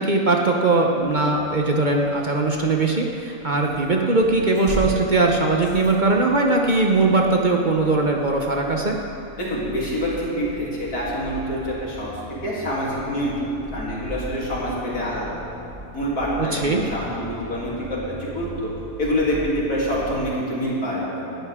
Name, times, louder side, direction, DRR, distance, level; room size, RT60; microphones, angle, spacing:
voice 1, 0.0-9.0 16.4-16.8, right 3 dB, 40° right, 1 dB, 0.9 m, -20 dB
sound 1, 1.0-20.2, right 1 dB, 20° right, 3.8 m, -39 dB
voice 2, 9.4-12.2 12.4-13.3 13.7-15.3 15.9-18.7 19.0-21.4, equal, 85° left, -6 dB, 3.6 m, -26 dB
18.5 x 11.5 x 3.6 m, 2.8 s
omnidirectional pair, 1.5 m